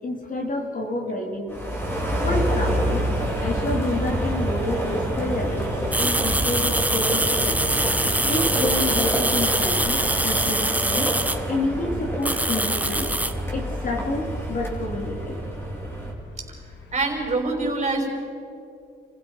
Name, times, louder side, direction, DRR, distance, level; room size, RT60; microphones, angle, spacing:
voice 1, 0.0-1.6 2.2-3.1 3.4-5.7 6.0-7.7 8.2-11.1 11.5-13.1 13.5-15.4, left 2 dB, 40° left, 2 dB, 3.6 m, -29 dB
sound 1, 1.5-17.4, left 2 dB, 65° left, 2.6 m, -42 dB
sound 2, 1.5-16.1, right 1 dB, 10° left, 4.6 m, -27 dB
sound 3, 5.9-11.4 12.2-13.3, right 1 dB, 5° right, 1.3 m, -24 dB
voice 2, 16.9-18.1, right 3 dB, 35° right, 1 dB, 5.3 m, -25 dB
28.5 x 15.5 x 5.9 m, 2.7 s
cardioid pair, 90°, 20 cm